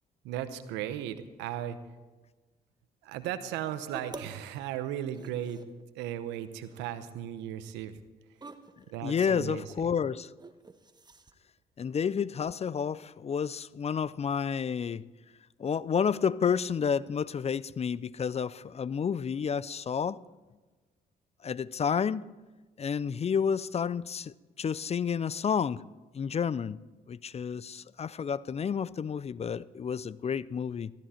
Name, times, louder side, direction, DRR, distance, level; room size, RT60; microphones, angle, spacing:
voice 1, 0.2-1.8 3.0-5.6 5.9-8.0 8.9-10.0, right 11 dB, 85° right, 0.9 m, -36 dB
sound 1, 3.9-4.5 4.8-5.9 6.3-6.7 7.0-7.1 8.4-8.9 10.4-11.3, right 3 dB, 25° right, 1.2 m, -47 dB
voice 2, 9.0-10.3 11.8-15.0 15.6-20.2 21.4-22.2 22.8-25.8 26.1-26.8 27.1-30.9, left 7 dB, 35° left, 0.5 m, -30 dB
15.0 x 13.5 x 4.4 m
supercardioid pair, 55°, 18 cm